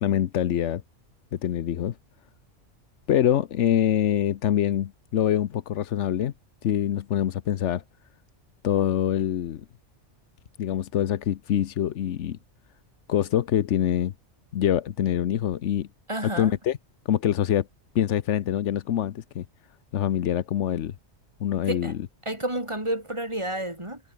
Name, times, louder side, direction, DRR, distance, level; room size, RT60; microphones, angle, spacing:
voice 1, 0.0-0.8 1.3-2.0 3.1-6.3 6.6-7.8 8.6-9.6 10.6-12.4 13.1-14.1 14.5-15.9 16.2-16.8 17.0-17.7 17.9-19.4 19.9-20.9 21.4-22.0, left 10 dB, 90° left, 1.1 m, -25 dB
voice 2, 16.1-16.6 21.7-21.9 22.2-24.0, right 1 dB, 25° right, 5.0 m, -30 dB
omnidirectional pair, 1.2 m